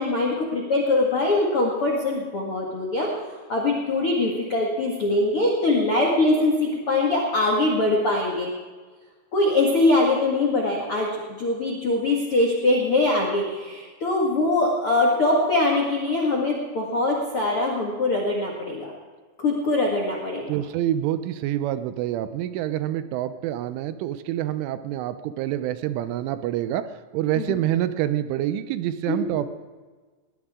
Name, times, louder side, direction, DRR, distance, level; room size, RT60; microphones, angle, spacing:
voice 1, 0.0-3.1 3.5-8.5 9.3-11.1 11.4-18.9 19.4-20.5 27.3-27.4 29.1-29.2, left 2 dB, 60° left, -1 dB, 1.4 m, -22 dB
voice 2, 20.5-29.5, right 12 dB, 80° right, 12 dB, 3.1 m, -27 dB
20.5 x 18.0 x 3.7 m, 1.4 s
omnidirectional pair, 5.7 m